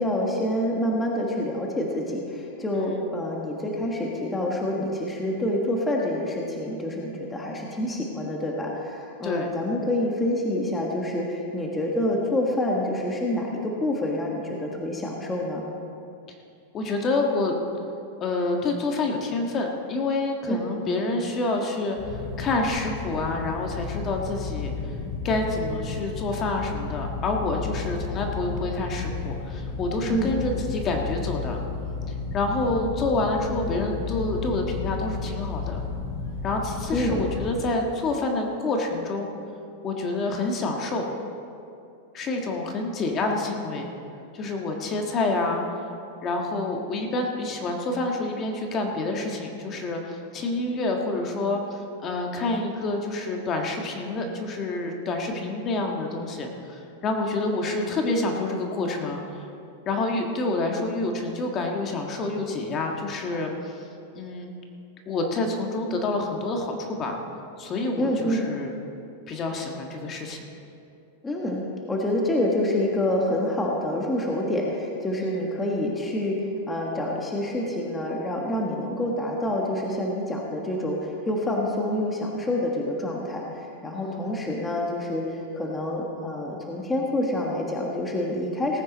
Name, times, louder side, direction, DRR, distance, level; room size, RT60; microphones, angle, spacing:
voice 1, 0.0-15.6 20.5-20.6 30.1-30.4 36.9-37.3 68.0-68.5 71.2-71.6 71.9-76.4 76.7-88.8, left 1 dB, 10° left, -1 dB, 1.4 m, -27 dB
voice 2, 2.7-3.0 9.2-9.5 16.7-17.5 18.2-24.7 25.2-31.6 32.3-35.8 36.4-39.3 39.8-41.1 42.1-43.9 44.3-45.6 46.2-59.2 59.8-63.9 64.1-64.5 65.1-67.1 67.6-68.7 69.3-70.4 75.2-75.4 83.9-84.3, left 2 dB, 30° left, 2 dB, 1.5 m, -28 dB
sound 1, 22.0-37.5, left 4 dB, 50° left, 3.2 m, -33 dB
18.5 x 9.0 x 4.1 m, 2.6 s
supercardioid pair, 140°, 0 cm